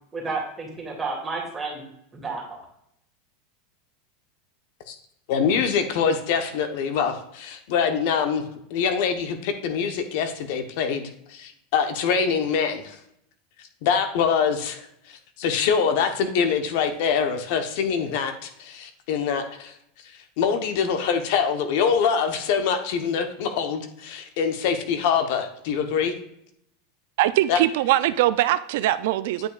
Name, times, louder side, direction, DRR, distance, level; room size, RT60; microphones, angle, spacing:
voice 1, 0.1-1.8 2.1-2.6, right 3 dB, 15° right, -3 dB, 2.3 m, -31 dB
voice 2, 5.3-8.4 8.7-13.0 13.8-19.7 20.4-26.1 27.5-27.6, left 6 dB, 60° left, 7 dB, 0.9 m, -24 dB
voice 3, 27.2-29.5, right 14 dB, 70° right, 14 dB, 0.3 m, -21 dB
9.0 x 5.5 x 2.4 m, 0.74 s
supercardioid pair, 145°, 0 cm